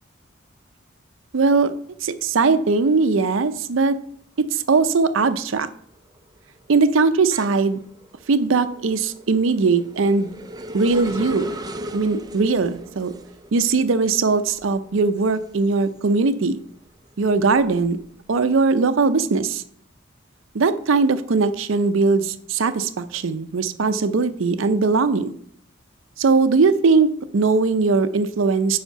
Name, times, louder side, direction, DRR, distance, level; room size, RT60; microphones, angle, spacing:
voice 1, 1.3-1.7 2.0-4.0 4.5-5.7 6.7-7.8 8.3-10.3 10.7-11.5 11.9-13.1 13.5-16.6 17.2-18.0 18.3-19.6 20.5-25.3 26.2-27.1 27.3-28.8, right 4 dB, 80° right, 11 dB, 0.5 m, -20 dB
sound 1, 4.4-4.8 5.2-16.4 16.9-18.6, right 1 dB, 20° right, 0.5 m, -38 dB
7.1 x 5.0 x 5.6 m, 0.65 s
head